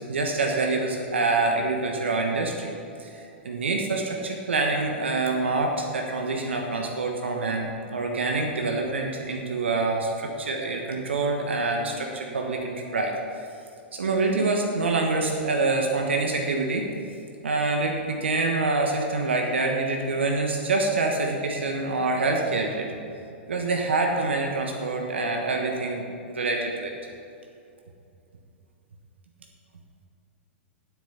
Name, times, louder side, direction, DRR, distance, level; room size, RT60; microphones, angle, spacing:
voice 1, 0.0-2.7 3.0-13.1 13.9-16.8 17.4-22.9 23.5-26.9, right 3 dB, 75° right, 2 dB, 1.3 m, -26 dB
9.5 x 8.6 x 5.6 m, 2.6 s
figure-of-eight pair, 105°, 6 cm